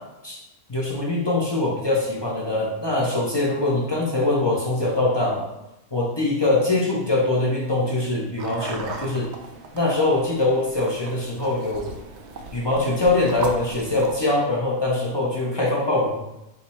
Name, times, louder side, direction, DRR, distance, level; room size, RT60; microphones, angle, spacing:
voice 1, 0.7-5.5 5.9-9.3 9.7-11.9 12.5-16.2, left 2 dB, 30° left, -4 dB, 0.4 m, -23 dB
sound 1, 8.4-14.2, right 3 dB, 65° right, 0.7 m, -37 dB
5.0 x 2.0 x 4.3 m, 0.92 s
omnidirectional pair, 1.6 m